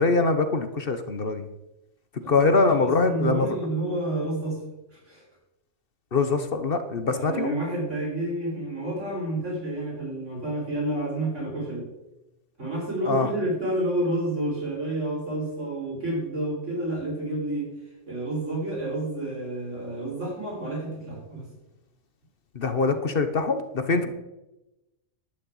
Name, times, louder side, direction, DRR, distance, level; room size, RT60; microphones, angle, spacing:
voice 1, 0.0-1.5 2.3-3.6 6.1-7.5 13.0-13.3 22.5-24.1, left 3 dB, 50° left, 9 dB, 1.2 m, -23 dB
voice 2, 2.2-4.6 4.9-5.2 7.0-11.8 12.6-17.7 18.1-21.5 23.9-24.1, right 1 dB, 80° right, -3 dB, 6.0 m, -30 dB
11.5 x 6.7 x 8.4 m, 0.95 s
omnidirectional pair, 1.2 m